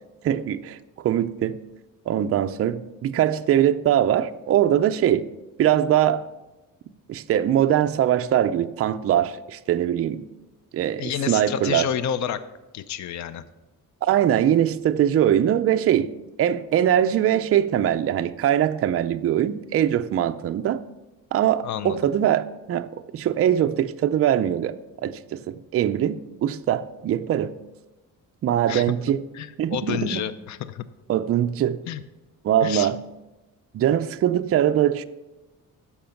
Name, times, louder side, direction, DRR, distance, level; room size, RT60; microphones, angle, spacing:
voice 1, 0.2-0.8 1.0-1.6 2.1-5.3 5.6-6.2 7.1-10.2 10.7-11.8 14.0-16.1 16.4-20.8 21.3-24.7 25.0-27.5 28.4-29.2 29.6-30.2 31.1-31.8 32.4-33.0 33.7-35.0, right 10 dB, 40° right, 0.4 m, -22 dB
voice 2, 11.0-12.4 12.7-13.4 21.6-22.0 28.7-28.8 29.3-30.8 31.9-32.0 32.6-32.9, left 9 dB, 55° left, 0.5 m, -29 dB
10.5 x 7.1 x 5.8 m
cardioid pair, 160°, 35 cm